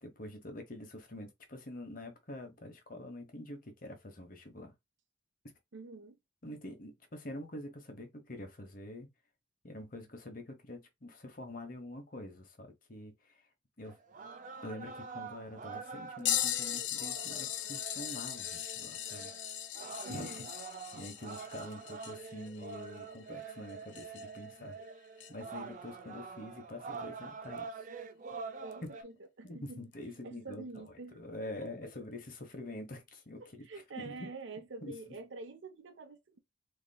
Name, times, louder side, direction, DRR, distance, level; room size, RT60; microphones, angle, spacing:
voice 1, 0.0-4.7 6.4-9.1 9.6-13.3 13.8-14.0 14.6-19.3 19.7-20.4 20.9-24.8 25.3-27.8 29.4-33.7 34.0-34.3 34.8-34.9, left 1 dB, 45° left, 1.1 m, -46 dB
voice 2, 5.7-6.2 20.0-20.5 28.6-29.9 30.2-31.2 31.5-31.9 33.4-36.4, right 3 dB, 80° right, 0.7 m, -47 dB
sound 1, 13.8-29.0, right 5 dB, 40° right, 0.5 m, -46 dB
sound 2, 16.3-24.5 25.2-25.3 27.6-27.7 28.7-28.9 29.9-30.0, left 11 dB, 70° left, 0.5 m, -38 dB
4.0 x 2.9 x 2.2 m
head